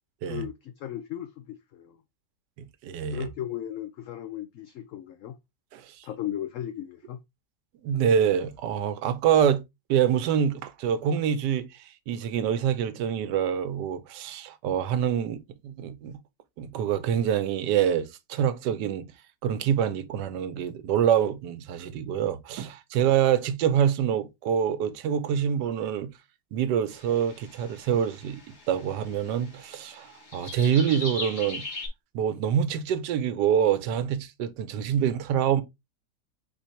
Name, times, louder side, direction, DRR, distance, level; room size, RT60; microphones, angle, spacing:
voice 1, 0.3-2.0 3.1-5.4 6.0-7.2, left 11 dB, 70° left, 0.7 m, -36 dB
voice 2, 2.6-3.3 5.7-6.1 7.8-9.6 9.9-11.7 12.1-16.2 16.6-19.1 19.4-26.1 26.5-31.6 32.1-35.6, right 8 dB, 85° right, 1.3 m, -26 dB
sound 1, 26.9-31.9, left 3 dB, 45° left, 1.4 m, -40 dB
4.5 x 2.6 x 4.4 m
omnidirectional pair, 1.8 m